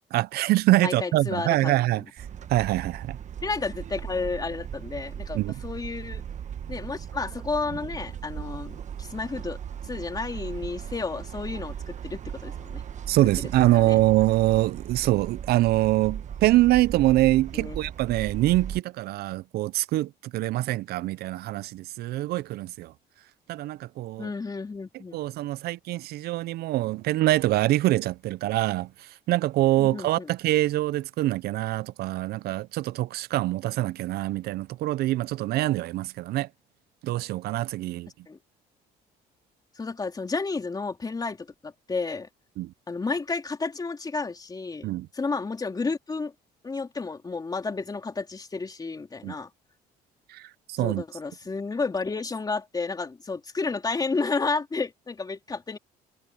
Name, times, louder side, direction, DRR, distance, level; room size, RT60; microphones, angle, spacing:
voice 1, 0.1-2.0 2.5-3.2 5.3-5.6 13.1-22.9 23.5-24.3 25.1-36.5 37.0-38.1 42.6-42.7 44.8-45.1 49.2-49.3 50.3-51.0, right 16 dB, 70° right, 0.4 m, -24 dB
voice 2, 0.8-1.7 3.4-6.2 6.7-9.6 9.8-12.8 13.6-14.0 17.5-17.8 24.2-25.2 29.8-30.3 38.3-38.4 39.7-42.3 42.9-44.9 45.1-46.3 46.6-49.5 50.8-55.8, left 4 dB, 25° left, 3.5 m, -31 dB
sound 1, 2.2-18.8, right 8 dB, 45° right, 1.2 m, -37 dB
cardioid pair, 110°, 17 cm